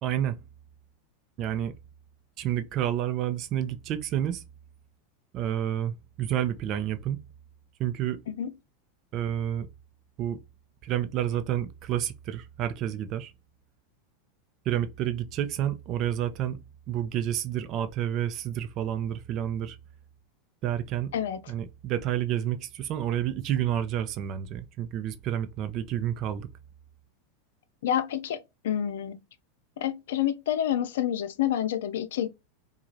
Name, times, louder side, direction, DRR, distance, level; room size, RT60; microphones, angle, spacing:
voice 1, 0.0-0.4 1.4-1.7 2.4-4.4 5.3-7.2 7.8-8.2 9.1-9.7 10.2-10.4 10.8-13.3 14.6-16.6 16.9-19.8 20.6-21.1 21.5-26.5, right 11 dB, 45° right, 0.6 m, -29 dB
voice 2, 27.8-29.2 29.8-32.3, left 10 dB, 75° left, 0.5 m, -28 dB
4.7 x 2.4 x 2.7 m
hypercardioid pair, 105°, 0 cm